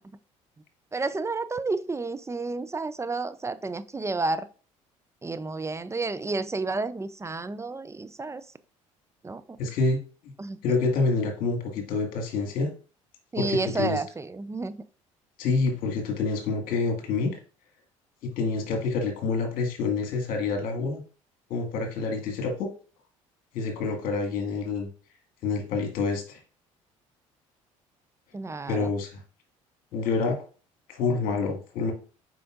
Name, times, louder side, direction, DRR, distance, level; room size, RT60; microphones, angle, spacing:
voice 1, 0.9-4.5 5.2-8.4 9.2-9.4 10.4-10.6 13.3-14.8 28.3-28.9, right 3 dB, 15° right, 0.5 m, -31 dB
voice 2, 9.6-10.0 10.6-12.7 13.4-14.0 15.4-17.4 18.2-21.0 21.5-22.7 23.5-24.9 25.4-26.4 28.7-29.1 29.9-30.4 30.9-31.9, left 4 dB, 60° left, 1.9 m, -27 dB
7.6 x 5.0 x 2.5 m
hypercardioid pair, 55°, 17 cm